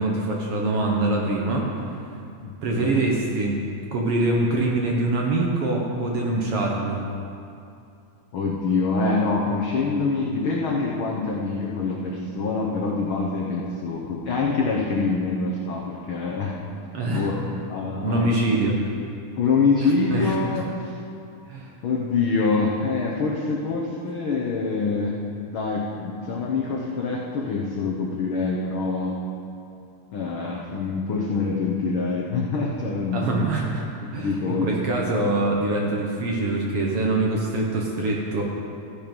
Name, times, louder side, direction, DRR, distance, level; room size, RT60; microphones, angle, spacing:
voice 1, 0.0-1.6 2.6-3.6 3.9-7.0 16.9-17.3 18.0-18.7 19.8-20.4 21.5-21.7 33.1-33.8 34.1-38.4, right 2 dB, 60° right, -1 dB, 1.7 m, -24 dB
voice 2, 2.4-3.1 8.3-16.5 17.1-18.3 19.4-20.6 21.8-25.2 25.5-29.2 30.1-33.3 34.2-34.7, left 4 dB, 75° left, -2 dB, 1.2 m, -25 dB
14.0 x 8.7 x 5.3 m, 2.5 s
omnidirectional pair, 3.6 m